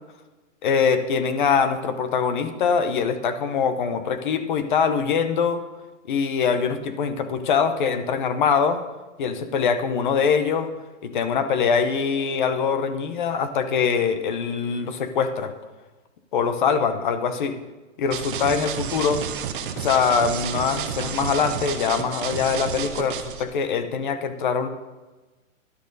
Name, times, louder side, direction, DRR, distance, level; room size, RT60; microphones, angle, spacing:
voice 1, 0.6-5.6 6.1-8.8 9.2-10.7 11.0-15.5 16.3-17.6 18.0-19.2 19.8-24.7, left 6 dB, 35° left, 10 dB, 0.9 m, -23 dB
sound 1, 18.1-23.4, right 7 dB, 40° right, 1.1 m, -30 dB
13.0 x 11.0 x 4.1 m, 1.2 s
hypercardioid pair, 170°, 40 cm